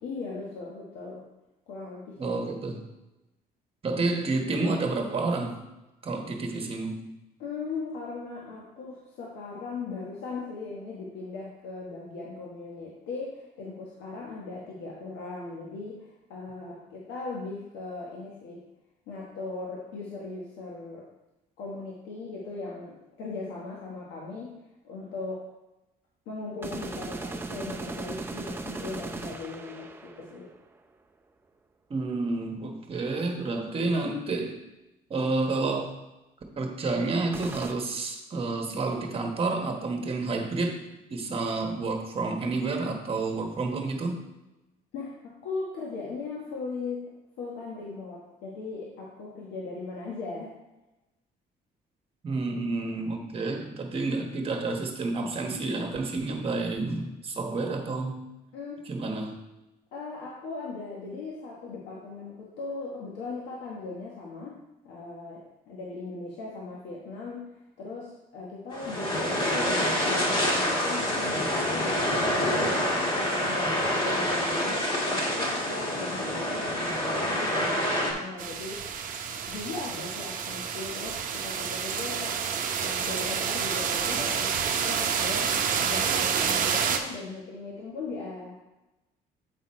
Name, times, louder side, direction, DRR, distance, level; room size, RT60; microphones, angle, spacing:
voice 1, 0.0-1.2 1.7-2.4 7.4-18.6 19.1-21.0 21.6-24.6 24.8-25.4 26.3-30.5 44.9-47.1 47.4-50.5 58.5-58.8 59.9-64.6 64.8-67.5 67.8-74.8 75.2-78.9 79.4-82.4 82.8-88.6, left 3 dB, 85° left, -4 dB, 1.3 m, -38 dB
voice 2, 2.2-2.8 3.8-5.6 6.0-7.0 31.9-34.6 35.1-35.9 36.6-40.8 41.1-44.2 52.2-58.2 58.9-59.4, right 3 dB, 35° right, 3 dB, 1.2 m, -29 dB
sound 1, 26.6-30.7 37.3-37.7, right 3 dB, 15° right, 0.5 m, -37 dB
sound 2, 68.7-78.1, left 1 dB, 30° left, 1.8 m, -27 dB
sound 3, 78.4-87.0, right 7 dB, 55° right, 0.7 m, -29 dB
8.1 x 4.0 x 4.3 m, 0.99 s
cardioid pair, 110°, 17 cm